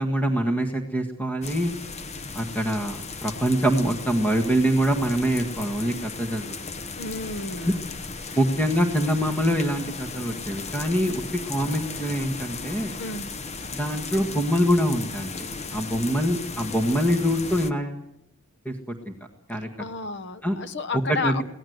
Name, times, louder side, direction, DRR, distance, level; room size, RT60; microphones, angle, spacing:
voice 1, 0.0-1.7 2.3-6.6 8.3-11.2 11.5-13.0 13.7-15.5 15.7-18.0 18.6-18.7 19.0-19.1 19.5-19.7 20.4-20.6 21.1-21.4, equal, 10° left, 4 dB, 1.6 m, -24 dB
sound 1, 1.4-17.7, left 4 dB, 30° left, 0.9 m, -36 dB
voice 2, 6.9-7.9 8.2-8.4 13.0-13.3 19.8-21.4, left 3 dB, 55° left, 13 dB, 1.1 m, -32 dB
23.0 x 17.5 x 8.0 m, 0.83 s
head